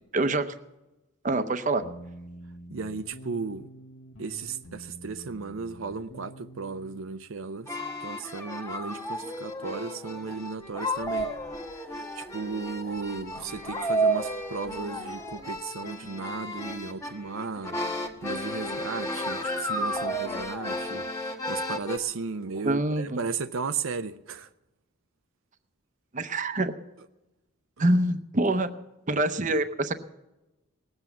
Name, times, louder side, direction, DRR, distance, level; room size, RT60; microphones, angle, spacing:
voice 1, 0.1-0.5 1.2-1.8 22.5-23.2 26.1-26.7 27.8-28.7 29.1-29.9, right 2 dB, 40° right, 0.8 m, -25 dB
sound 1, 1.8-7.0, equal, 70° left, 1.2 m, -46 dB
voice 2, 2.7-3.7 4.2-7.7 8.0-11.3 12.2-24.5, right 4 dB, 80° right, 0.6 m, -35 dB
sound 2, 7.7-22.0, right 1 dB, 15° left, 1.3 m, -32 dB
19.0 x 8.0 x 7.2 m
head